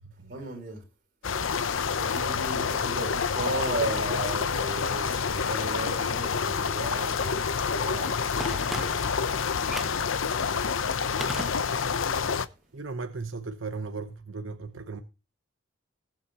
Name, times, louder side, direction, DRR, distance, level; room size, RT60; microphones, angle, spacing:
voice 1, 0.3-0.8 1.6-1.7 2.0-8.1 8.4-9.0 9.7-10.1, right 2 dB, 50° right, 4.1 m, -35 dB
sound 1, 1.2-12.5, left 6 dB, 90° left, 0.7 m, -28 dB
sound 2, 3.5-9.1, right 6 dB, 65° right, 2.5 m, -49 dB
Telephone, 8.4-9.3 9.7-10.1 11.2-12.1 12.3-12.4, equal, ahead, 1.2 m, -38 dB
voice 2, 12.7-15.0, right 4 dB, 90° right, 1.0 m, -36 dB
20.0 x 7.4 x 2.9 m
head